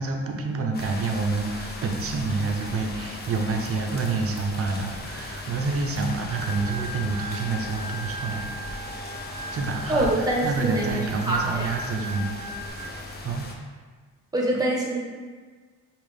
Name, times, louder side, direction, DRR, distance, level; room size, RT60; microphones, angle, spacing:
voice 1, 0.0-8.5 9.5-12.3 13.2-13.5, right 4 dB, 50° right, 2 dB, 0.7 m, -28 dB
sound 1, 0.7-13.5, left 2 dB, 35° left, 0.6 m, -37 dB
Organ, 6.3-12.7, right 1 dB, 10° left, 1.1 m, -38 dB
voice 2, 9.9-10.9 11.3-11.7 14.3-15.0, right 1 dB, 10° right, -3 dB, 1.0 m, -24 dB
5.3 x 2.5 x 3.4 m, 1.5 s
cardioid pair, 90°, 30 cm